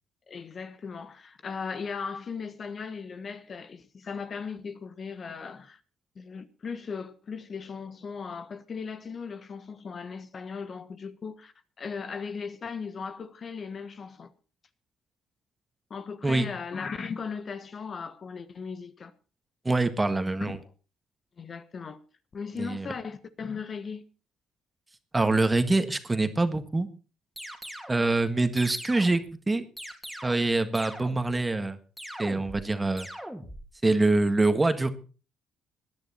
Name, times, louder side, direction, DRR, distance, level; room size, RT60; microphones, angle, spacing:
voice 1, 0.3-5.8 6.1-14.3 15.9-19.1 20.4-20.7 21.4-22.0 22.3-24.0 26.3-26.4, left 5 dB, 45° left, 1.4 m, -37 dB
voice 2, 19.6-20.6 22.6-22.9 25.1-26.9 27.9-29.6 30.2-31.8 32.2-33.1 33.8-34.9, right 2 dB, 20° right, 1.7 m, -25 dB
sound 1, 27.4-28.0 28.6-29.3 29.8-30.5 30.8-31.4 32.0-32.7 33.0-33.7, equal, ahead, 2.8 m, -41 dB
18.5 x 10.5 x 4.3 m
cardioid pair, 80°, 0 cm